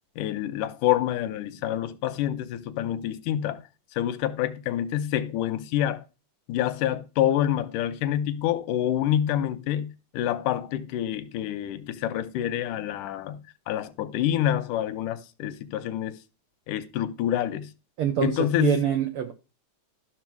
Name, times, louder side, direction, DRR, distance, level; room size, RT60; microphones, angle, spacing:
voice 1, 0.2-3.6 4.0-6.0 6.5-16.2 16.7-17.7 18.2-18.8, left 11 dB, 90° left, 2.3 m, -27 dB
voice 2, 18.0-19.3, right 9 dB, 85° right, 1.2 m, -25 dB
12.5 x 6.2 x 4.6 m
omnidirectional pair, 3.6 m